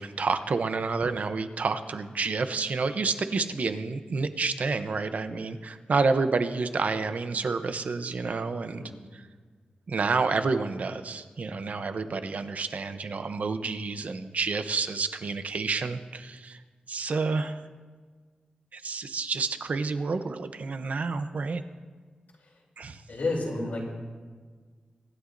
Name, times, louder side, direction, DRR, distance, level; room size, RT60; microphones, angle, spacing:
voice 1, 0.0-8.8 9.1-9.3 9.9-16.6 16.9-17.6 18.7-21.6 22.8-23.0, right 4 dB, 55° right, 10 dB, 0.7 m, -29 dB
voice 2, 23.1-23.9, left 2 dB, 70° left, -3 dB, 3.3 m, -30 dB
24.5 x 11.0 x 2.6 m, 1.5 s
wide cardioid pair, 150°, 3 cm